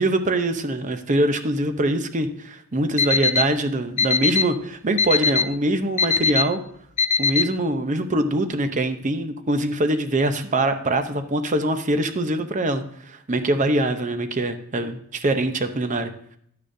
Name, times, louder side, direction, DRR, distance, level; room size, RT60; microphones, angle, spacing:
voice 1, 0.0-6.6 7.2-16.1, right 1 dB, 35° right, 8 dB, 0.7 m, -23 dB
Alarm, 3.0-3.4 4.0-4.4 5.0-5.4 6.0-6.4 7.0-7.4, left 5 dB, 30° left, 0.4 m, -19 dB
11.5 x 10.0 x 2.7 m, 0.68 s
head